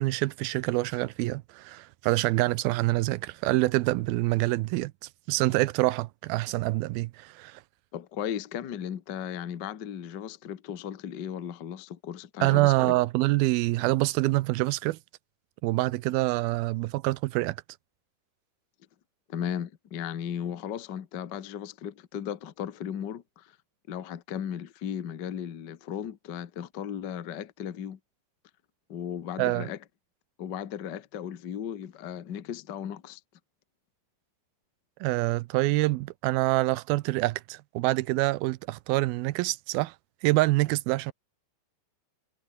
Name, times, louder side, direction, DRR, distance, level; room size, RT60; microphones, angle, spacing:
voice 1, 0.0-4.9 5.3-7.6 12.4-15.0 15.6-17.6 29.4-29.7 35.0-40.0 40.2-41.1, right 19 dB, 90° right, 2.6 m, -26 dB
voice 2, 7.9-12.9 19.3-23.5 23.9-28.0 28.9-29.8 30.4-33.2, left 9 dB, 70° left, 1.0 m, -36 dB
omnidirectional pair, 4.2 m